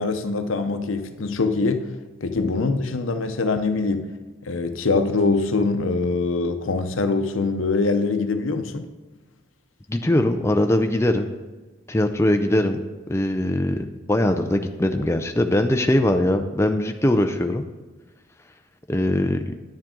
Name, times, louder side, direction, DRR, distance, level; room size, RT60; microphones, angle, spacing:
voice 1, 0.0-1.9 2.2-4.1 4.4-8.9, left 3 dB, 85° left, 8 dB, 0.7 m, -23 dB
voice 2, 9.9-11.3 11.9-12.8 13.1-17.6 18.9-19.5, left 1 dB, 15° left, 5 dB, 0.5 m, -21 dB
10.5 x 7.3 x 3.8 m, 1.2 s
head